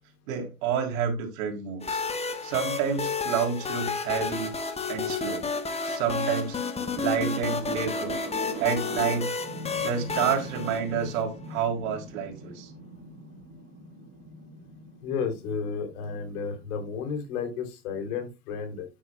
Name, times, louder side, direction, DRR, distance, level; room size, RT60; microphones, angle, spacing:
voice 1, 0.3-2.0 2.4-4.5 4.9-5.5 5.8-6.6 6.9-8.2 8.6-9.3 9.8-12.7, right 7 dB, 60° right, 3.3 m, -29 dB
sound 1, 1.8-11.5, left 4 dB, 15° left, 1.1 m, -31 dB
sound 2, 6.8-17.1, right 2 dB, 25° right, 4.3 m, -42 dB
voice 2, 15.0-18.9, left 6 dB, 65° left, 3.1 m, -32 dB
9.6 x 9.1 x 2.3 m
hypercardioid pair, 105°, 45 cm